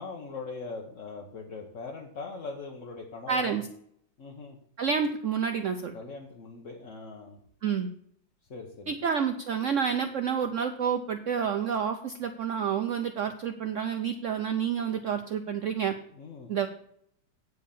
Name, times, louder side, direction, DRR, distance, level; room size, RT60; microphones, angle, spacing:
voice 1, 0.0-3.6 4.2-4.6 5.9-7.4 8.5-8.9 16.1-16.5, left 4 dB, 45° left, 0 dB, 1.3 m, -41 dB
voice 2, 3.3-3.6 4.8-5.9 7.6-7.9 8.9-15.9 16.5-16.7, right 7 dB, 80° right, 7 dB, 0.6 m, -29 dB
9.1 x 4.8 x 7.1 m, 0.67 s
omnidirectional pair, 2.1 m